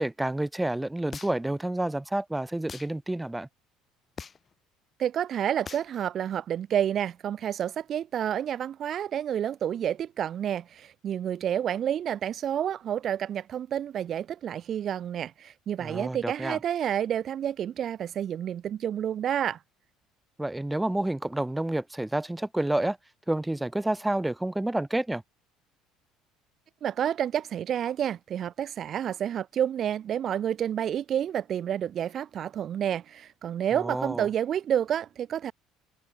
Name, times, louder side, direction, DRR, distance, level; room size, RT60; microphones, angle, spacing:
voice 1, 0.0-3.5 15.8-16.6 20.4-23.0 23.3-25.2 33.7-34.3, right 1 dB, 10° right, 1.0 m, -29 dB
sound 1, 1.1-1.6 2.7-2.9 4.2-4.5 5.7-5.9, left 6 dB, 35° left, 0.5 m, -41 dB
voice 2, 5.0-19.6 26.8-35.5, right 9 dB, 50° right, 0.8 m, -29 dB
hypercardioid pair, 60°, 0 cm